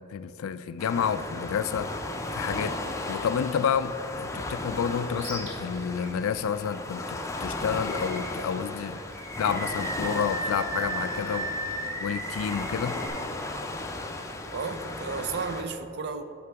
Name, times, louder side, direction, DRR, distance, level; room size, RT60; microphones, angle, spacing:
voice 1, 0.1-1.9 2.3-2.8 3.1-9.0 9.4-11.5 12.0-13.0, left 7 dB, 85° left, 12 dB, 0.3 m, -29 dB
Waves surf, 0.8-15.6, left 2 dB, 15° left, 0.5 m, -35 dB
Animal, 5.1-5.5 6.0-6.1 7.7-8.5 9.1-13.1, right 1 dB, 30° right, 1.8 m, -35 dB
voice 2, 14.5-16.2, right 4 dB, 55° right, 9 dB, 0.5 m, -33 dB
9.5 x 5.9 x 3.5 m, 3.0 s
head